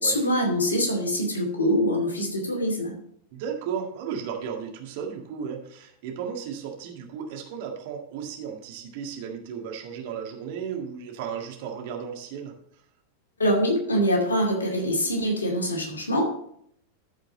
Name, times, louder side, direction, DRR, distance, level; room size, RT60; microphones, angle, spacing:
voice 1, 0.0-2.9 13.4-16.2, equal, 75° left, 1 dB, 2.4 m, -24 dB
voice 2, 3.3-12.5, right 7 dB, 50° right, 2 dB, 1.8 m, -34 dB
13.5 x 5.1 x 3.9 m, 0.70 s
figure-of-eight pair, 90°, 0 cm